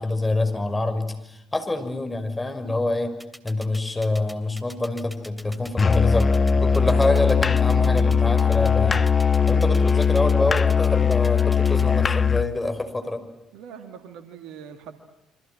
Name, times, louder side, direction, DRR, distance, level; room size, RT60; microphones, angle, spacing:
voice 1, 0.0-3.1 3.4-9.1 9.5-13.2, left 2 dB, 15° left, 8 dB, 5.8 m, -26 dB
sound 1, 3.2-11.8, equal, 5° right, 3.1 m, -43 dB
Musical instrument, 5.8-12.5, left 6 dB, 35° left, 1.0 m, -20 dB
voice 2, 13.5-15.0, right 7 dB, 70° right, 8 dB, 2.1 m, -42 dB
28.5 x 25.5 x 7.8 m, 0.81 s
hypercardioid pair, 50°, 0 cm